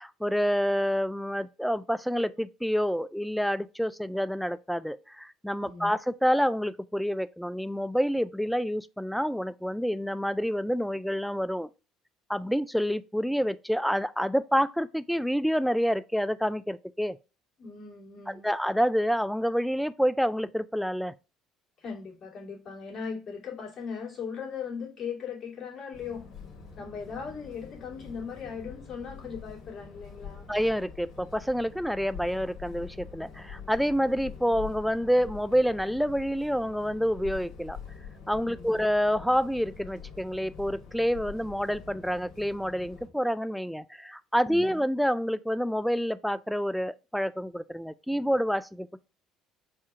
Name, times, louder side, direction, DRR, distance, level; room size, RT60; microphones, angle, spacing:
voice 1, 0.0-11.7 12.3-17.2 18.3-21.1 30.5-37.8 38.3-49.0, equal, ahead, 0.3 m, -28 dB
voice 2, 5.6-5.9 17.6-18.5 21.8-26.3 26.8-30.5 38.4-38.8 44.4-44.8, left 6 dB, 45° left, 2.5 m, -39 dB
sound 1, 25.9-43.1, left 6 dB, 60° left, 1.8 m, -45 dB
4.3 x 2.4 x 4.8 m
supercardioid pair, 70°, 0 cm